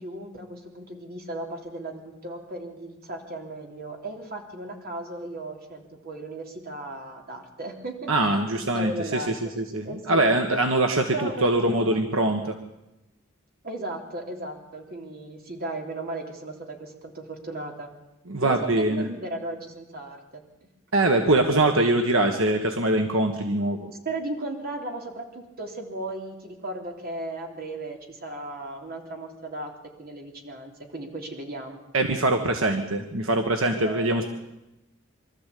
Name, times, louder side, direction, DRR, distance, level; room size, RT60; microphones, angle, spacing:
voice 1, 0.0-8.1 8.5-9.3 9.8-10.3 11.1-12.3 13.6-17.9 18.4-20.7 24.0-31.8 33.6-34.2, right 2 dB, 45° right, 2 dB, 3.3 m, -36 dB
voice 2, 8.1-12.6 18.3-19.1 20.9-23.9 31.9-34.2, right 2 dB, 75° right, 5 dB, 1.5 m, -23 dB
24.0 x 13.5 x 8.5 m, 0.93 s
head